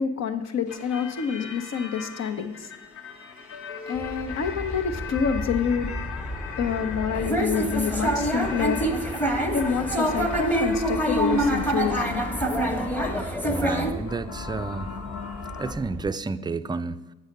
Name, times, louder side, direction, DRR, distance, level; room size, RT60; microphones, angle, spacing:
voice 1, 0.0-2.7 3.9-5.9 6.6-8.8 9.5-12.3 14.0-14.1, left 7 dB, 60° left, 1.0 m, -27 dB
sound 1, 0.7-15.7, left 5 dB, 80° left, 1.2 m, -39 dB
Aircraft, 3.9-16.1, equal, 25° left, 1.3 m, -36 dB
sound 2, 7.1-13.9, right 1 dB, 5° left, 1.1 m, -26 dB
voice 2, 13.5-14.9 15.6-17.0, right 3 dB, 15° right, 0.4 m, -30 dB
8.2 x 6.4 x 6.7 m
cardioid pair, 90°, 30 cm